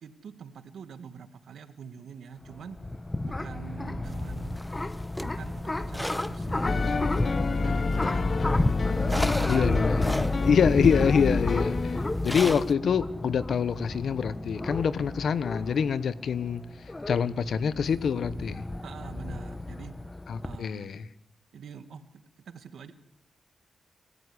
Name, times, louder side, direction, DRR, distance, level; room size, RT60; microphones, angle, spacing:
voice 1, 0.0-2.8 3.2-4.6 5.2-10.8 11.8-12.2 18.8-19.9 20.4-20.9 21.5-22.9, right 7 dB, 85° right, 9 dB, 2.0 m, -45 dB
sound 1, 2.4-20.6, left 2 dB, 25° left, 1.3 m, -31 dB
sound 2, 4.0-12.7, equal, 5° left, 1.0 m, -38 dB
sound 3, 6.6-12.0, left 4 dB, 55° left, 1.2 m, -29 dB
voice 2, 9.5-16.6 17.1-18.6 20.3-21.1, left 6 dB, 80° left, 16 dB, 1.1 m, -26 dB
27.0 x 14.5 x 9.9 m, 0.79 s
cardioid pair, 50°, 0 cm